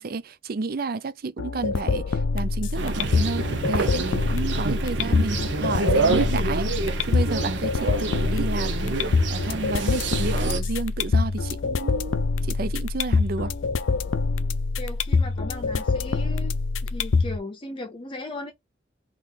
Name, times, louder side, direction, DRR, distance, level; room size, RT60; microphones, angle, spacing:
voice 1, 0.0-6.7 7.1-13.5, right 3 dB, 55° right, 0.5 m, -31 dB
sound 1, 1.4-17.4, left 4 dB, 90° left, 0.5 m, -25 dB
sound 2, 2.8-10.6, right 4 dB, 70° right, 0.9 m, -28 dB
voice 2, 14.8-16.5 16.8-18.5, left 2 dB, 30° left, 0.7 m, -37 dB
3.7 x 3.1 x 3.9 m
head